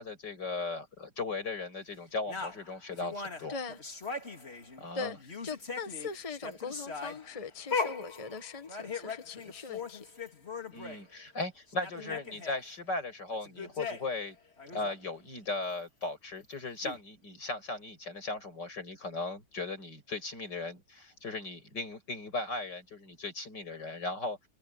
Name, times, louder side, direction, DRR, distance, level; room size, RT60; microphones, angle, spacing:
voice 1, 0.0-3.6 4.8-5.2 10.7-14.4 14.7-24.4, left 3 dB, 85° left, 7.3 m, -37 dB
sound 1, 2.3-4.9 5.2-11.0 11.4-11.5 11.7-12.6 13.3-14.2 14.6-14.9 16.5-16.6 16.8-17.0, left 4 dB, 35° left, 3.1 m, -39 dB
voice 2, 3.5-3.8 4.9-5.2 5.4-10.1 11.9-12.2, left 5 dB, 20° left, 1.5 m, -40 dB
omnidirectional pair, 1.8 m